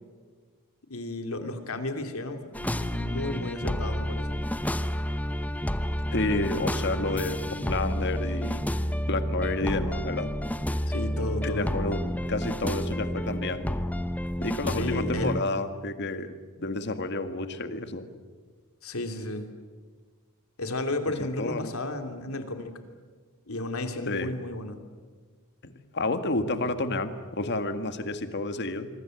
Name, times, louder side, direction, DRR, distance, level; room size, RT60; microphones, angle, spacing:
voice 1, 0.9-4.4 10.9-11.7 14.7-15.3 18.8-19.5 20.6-22.7 23.5-24.8, left 2 dB, 80° left, 6 dB, 2.9 m, -33 dB
sound 1, 2.5-15.4, equal, 5° left, 0.7 m, -30 dB
voice 2, 6.1-8.6 9.1-10.3 11.4-13.7 14.4-18.1 21.2-21.8 24.1-24.3 25.6-28.9, left 2 dB, 55° left, 9 dB, 1.8 m, -30 dB
26.0 x 24.0 x 7.9 m, 1.5 s
head